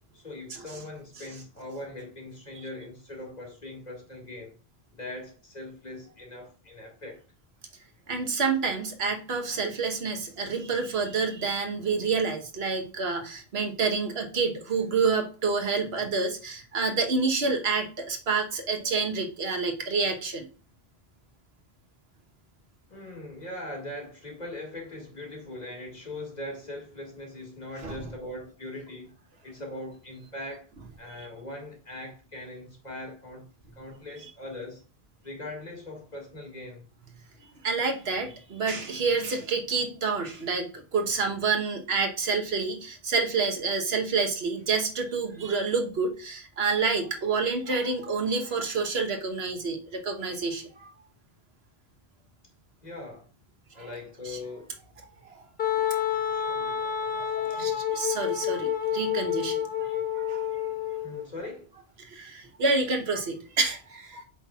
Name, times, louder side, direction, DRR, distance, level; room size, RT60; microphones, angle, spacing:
voice 1, 0.1-4.6 4.9-7.2 22.9-29.1 29.4-30.7 31.0-34.8 35.2-36.9 52.8-53.3 53.7-54.8 56.0-57.8 61.0-61.7, left 1 dB, 45° left, 2.1 m, -41 dB
voice 2, 8.1-20.5 27.8-28.0 37.4-50.9 53.8-53.9 54.2-54.4 55.2-55.4 55.7-56.0 56.4-56.5 57.2-60.4 62.0-64.3, right 4 dB, 80° right, 1.4 m, -28 dB
Wind instrument woodwind instrument, 55.6-61.2, left 9 dB, 65° left, 1.4 m, -29 dB
7.8 x 5.8 x 2.4 m
omnidirectional pair, 1.0 m